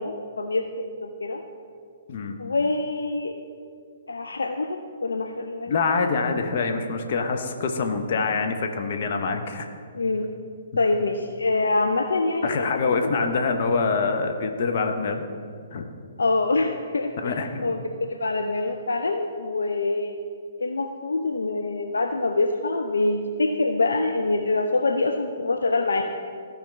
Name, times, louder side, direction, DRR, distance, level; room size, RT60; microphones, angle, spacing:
voice 1, 0.0-1.4 2.4-3.3 4.1-5.7 9.9-10.3 10.8-12.7 13.3-13.4 16.2-17.3 17.6-20.1 20.6-26.0, left 3 dB, 70° left, 4 dB, 0.5 m, -25 dB
voice 2, 5.7-9.7 12.4-15.2 15.7-15.9 17.2-17.6, left 4 dB, 45° left, 4 dB, 0.9 m, -25 dB
15.0 x 5.1 x 3.2 m, 2.2 s
figure-of-eight pair, 125°, 0 cm